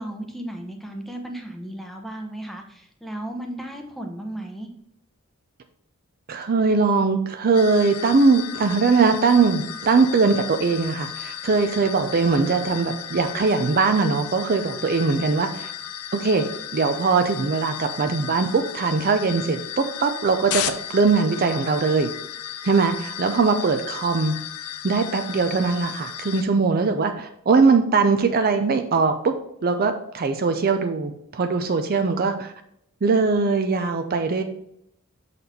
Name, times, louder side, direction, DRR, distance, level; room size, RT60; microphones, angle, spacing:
voice 1, 0.0-4.7, right 1 dB, ahead, 3 dB, 0.7 m, -35 dB
voice 2, 6.3-15.7 16.1-16.4 16.7-20.6 20.9-22.1 22.6-24.3 24.8-29.3 29.6-32.5 33.0-34.4, right 4 dB, 45° right, 7 dB, 0.5 m, -21 dB
sound 1, 7.5-26.4, left 10 dB, 85° left, 0.5 m, -35 dB
6.8 x 4.1 x 4.3 m, 0.73 s
head